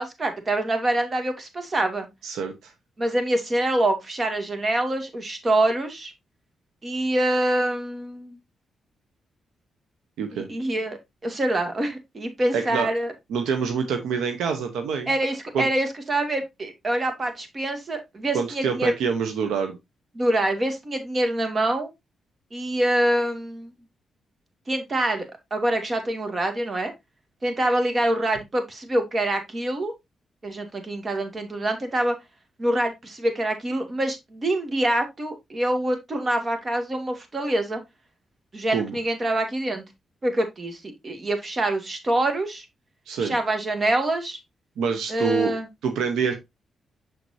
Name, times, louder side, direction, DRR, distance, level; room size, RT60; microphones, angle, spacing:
voice 1, 0.0-2.1 3.0-6.1 6.8-8.4 10.3-13.1 15.1-18.9 20.2-21.9 22.5-23.7 24.7-25.3 25.5-26.9 27.4-29.9 30.4-32.1 32.6-37.8 38.5-39.8 40.2-42.6 43.2-44.4 45.1-45.7, right 1 dB, 40° right, 6 dB, 2.3 m, -25 dB
voice 2, 2.2-2.7 10.2-10.5 12.5-12.9 13.3-15.1 15.5-15.7 18.3-19.8 38.7-39.0 43.1-43.3 44.8-45.5 45.8-46.3, right 6 dB, 85° right, 6 dB, 1.0 m, -26 dB
6.8 x 6.2 x 2.7 m, 0.19 s
supercardioid pair, 60°, 0 cm